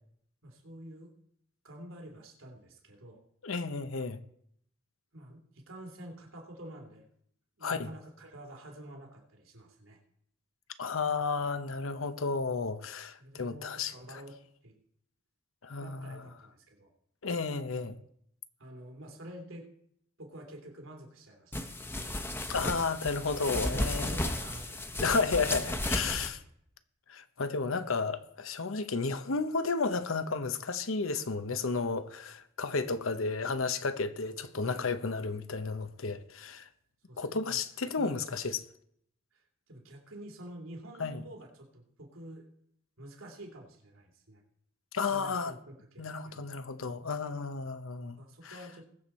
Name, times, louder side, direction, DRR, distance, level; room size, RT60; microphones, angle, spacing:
voice 1, 0.4-1.1 1.6-3.2 5.1-7.1 7.6-10.0 13.2-14.3 14.6-14.7 15.8-16.9 18.6-19.7 20.2-21.7 23.5-24.8 26.1-26.3 37.1-37.6 37.9-38.1 39.3-42.5 43.0-44.4 45.0-46.5 48.2-48.9, right 1 dB, 90° right, 2.7 m, -49 dB
voice 2, 3.4-4.2 7.6-7.9 10.8-13.9 15.6-16.2 17.2-18.0 22.5-24.3 25.0-26.4 27.1-36.7 37.2-38.6 41.0-41.2 44.9-45.5 46.0-48.2 48.4-48.6, left 4 dB, 85° left, 0.9 m, -32 dB
sound 1, 21.5-26.3, left 1 dB, 10° left, 0.9 m, -34 dB
21.0 x 7.0 x 4.3 m
head